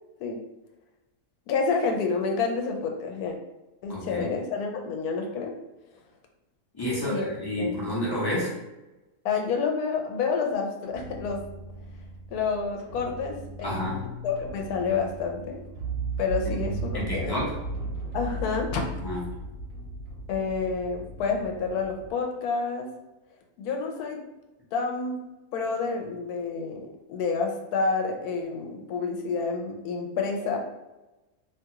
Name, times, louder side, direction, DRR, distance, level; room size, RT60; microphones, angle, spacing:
voice 1, 1.5-3.4 3.8-5.5 7.0-7.3 7.6-7.8 9.2-11.4 12.3-15.6 16.2-17.4 18.1-18.8 20.3-22.9 23.6-24.2 24.7-25.2 25.5-30.6, left 4 dB, 85° left, 3 dB, 1.1 m, -29 dB
voice 2, 3.9-4.2 6.7-8.5 13.6-14.0 16.9-17.5 19.0-19.2, left 1 dB, 25° left, -6 dB, 0.5 m, -29 dB
sound 1, 10.8-22.1, right 2 dB, 65° right, 1.0 m, -36 dB
2.8 x 2.3 x 2.8 m, 1.0 s
omnidirectional pair, 1.6 m